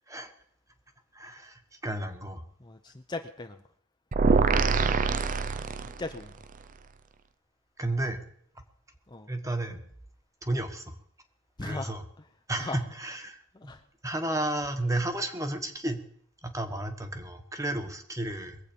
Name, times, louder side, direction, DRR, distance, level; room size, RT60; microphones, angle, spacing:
voice 1, 1.1-2.4 4.4-4.5 7.8-8.2 9.3-9.8 10.4-11.0 11.6-12.0 12.5-13.7 14.0-16.0 16.4-18.6, right 1 dB, 15° right, 6 dB, 1.3 m, -32 dB
voice 2, 2.6-3.6 5.8-6.3 9.1-9.3 11.6-11.9 12.6-12.8 13.5-13.8, left 2 dB, 20° left, 6 dB, 0.7 m, -38 dB
sound 1, 4.1-6.2, right 4 dB, 40° right, 0.5 m, -24 dB
22.0 x 8.2 x 5.2 m, 0.63 s
head